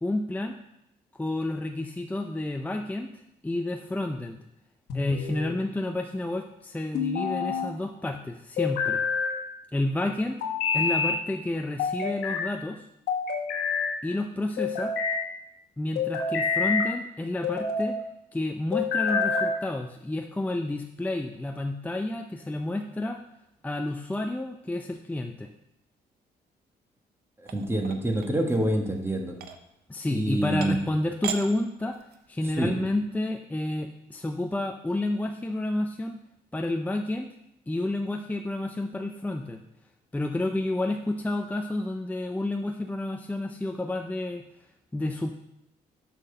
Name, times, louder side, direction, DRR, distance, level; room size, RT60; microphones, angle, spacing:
voice 1, 0.0-0.6 1.1-3.1 3.4-4.4 4.9-9.0 9.7-10.4 10.7-12.8 14.0-14.9 15.8-18.0 18.3-23.2 23.6-25.5 29.9-32.0 32.3-36.2 36.5-37.3 37.7-39.6 40.1-44.4 44.9-45.3, left 1 dB, 10° left, 4 dB, 0.5 m, -30 dB
sound 1, 4.9-5.6 6.9-7.7 8.6-9.4 10.4-11.2 11.8-12.5 13.1-13.9 14.6-15.2 15.9-16.9 17.4-18.0 18.7-19.5, left 5 dB, 80° left, 1.3 m, -27 dB
sound 2, 27.4-28.7 29.3-29.6 30.2-30.3 30.6-30.9 31.2-31.4 31.8-32.3, right 8 dB, 70° right, 0.7 m, -37 dB
voice 2, 27.5-29.4 30.1-30.8 32.6-32.7, right 1 dB, 15° right, 3 dB, 1.4 m, -26 dB
6.2 x 5.9 x 5.5 m, 0.83 s
cardioid pair, 85°, 17 cm